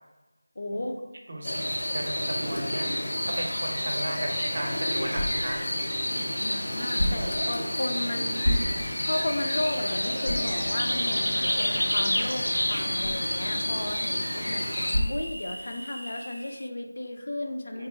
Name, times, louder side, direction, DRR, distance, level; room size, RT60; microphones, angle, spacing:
voice 1, 0.6-1.0 6.4-8.4 9.0-14.6 15.1-17.9, left 1 dB, 50° left, 4 dB, 0.3 m, -34 dB
voice 2, 1.3-2.9 3.2-5.6 6.0-6.4 17.7-17.9, right 1 dB, 45° right, 0 dB, 0.6 m, -35 dB
sound 1, 1.4-15.0, left 1 dB, 65° left, 0.7 m, -29 dB
sound 2, 4.3-16.0, equal, 90° left, 1.1 m, -35 dB
sound 3, 11.4-16.7, equal, 90° right, 0.3 m, -42 dB
2.7 x 2.2 x 3.6 m, 1.1 s
figure-of-eight pair, 170°, 0 cm